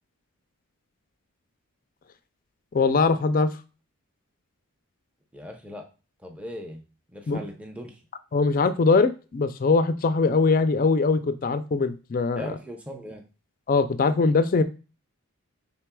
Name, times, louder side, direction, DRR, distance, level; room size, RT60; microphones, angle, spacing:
voice 1, 2.7-3.5 7.3-7.4 8.3-12.4 13.7-14.6, left 4 dB, 40° left, 11 dB, 0.3 m, -21 dB
voice 2, 5.3-5.9 6.2-6.8 7.1-8.0 12.4-13.2, equal, 5° right, 2 dB, 0.6 m, -39 dB
6.0 x 3.6 x 2.2 m, 0.33 s
head